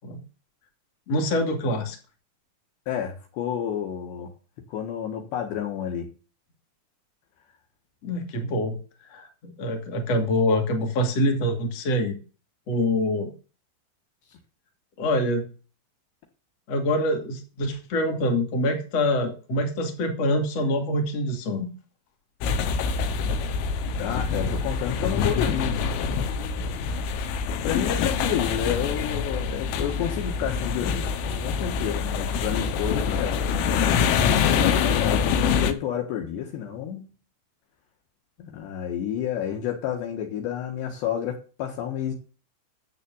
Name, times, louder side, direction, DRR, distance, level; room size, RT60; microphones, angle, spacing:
voice 1, 1.1-2.0 8.0-8.8 9.1-12.2 12.7-13.3 15.0-15.5 16.7-21.7 27.7-27.8, left 1 dB, 40° left, 3 dB, 2.9 m, -25 dB
voice 2, 2.9-4.3 4.7-6.1 24.0-25.9 27.6-33.4 34.4-37.1 38.4-42.1, left 9 dB, 65° left, 3 dB, 3.4 m, -30 dB
sound 1, 22.4-35.7, left 6 dB, 85° left, 3.8 m, -25 dB
10.5 x 7.5 x 7.1 m, 0.36 s
omnidirectional pair, 5.7 m